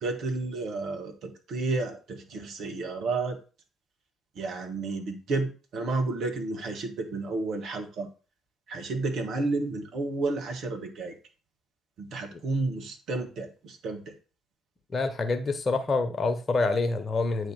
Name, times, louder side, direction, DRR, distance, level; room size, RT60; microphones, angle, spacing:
voice 1, 0.0-3.4 4.4-8.1 8.7-11.1 12.0-14.1, right 3 dB, 55° right, 3 dB, 1.7 m, -31 dB
voice 2, 14.9-17.5, left 3 dB, 35° left, 7 dB, 1.3 m, -27 dB
8.9 x 3.3 x 5.5 m, 0.35 s
figure-of-eight pair, 45°, 0 cm